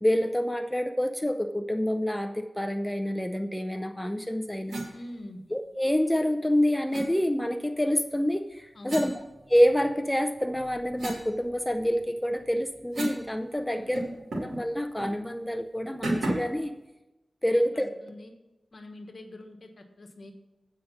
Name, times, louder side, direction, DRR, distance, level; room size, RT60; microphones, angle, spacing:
voice 1, 0.0-4.8 5.5-9.1 9.5-14.1 14.4-16.7 17.4-17.9, equal, 10° left, 6 dB, 0.6 m, -27 dB
sound 1, 4.7-4.9 6.9-7.1 8.9-9.9 10.4-13.3 13.5-13.6 13.9-14.6 15.0-15.1 16.0-16.6, right 2 dB, 80° right, 2.4 m, -34 dB
voice 2, 4.9-5.4 8.7-9.1 13.6-14.1 17.5-18.3 18.7-20.3, left 1 dB, 60° left, 5 dB, 1.2 m, -44 dB
8.5 x 5.1 x 7.1 m, 0.99 s
cardioid pair, 55°, 0 cm